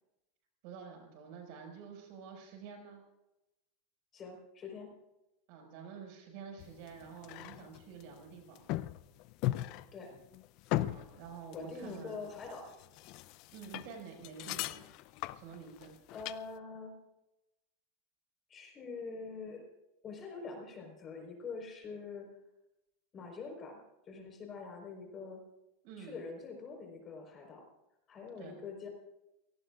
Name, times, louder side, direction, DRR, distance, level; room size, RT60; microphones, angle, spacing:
voice 1, 0.6-3.0 5.5-8.7 10.8-12.2 13.5-14.9 15.3-16.0 25.8-26.2 28.4-28.6, right 6 dB, 55° right, 3 dB, 5.7 m, -49 dB
voice 2, 4.1-4.9 9.9-10.1 11.5-12.7 16.1-16.9 18.5-19.6 20.0-22.3 23.1-23.8 24.0-25.4 26.0-27.7 28.1-28.9, left 4 dB, 25° left, 2 dB, 4.5 m, -44 dB
sound 1, 6.6-16.4, left 15 dB, 50° left, 0.5 m, -39 dB
29.5 x 18.0 x 2.5 m, 0.95 s
supercardioid pair, 145°, 0 cm